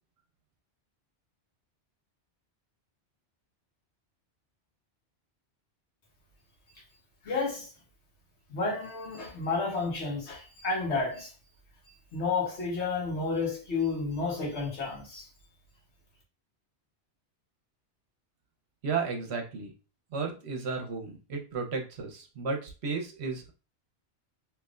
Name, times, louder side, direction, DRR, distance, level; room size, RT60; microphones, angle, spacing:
voice 1, 7.2-7.7 8.5-11.3 12.1-15.3, left 4 dB, 75° left, 1.4 m, -31 dB
voice 2, 18.8-19.7 20.1-23.5, right 4 dB, 70° right, 1.0 m, -33 dB
3.3 x 3.0 x 2.4 m
omnidirectional pair, 1.2 m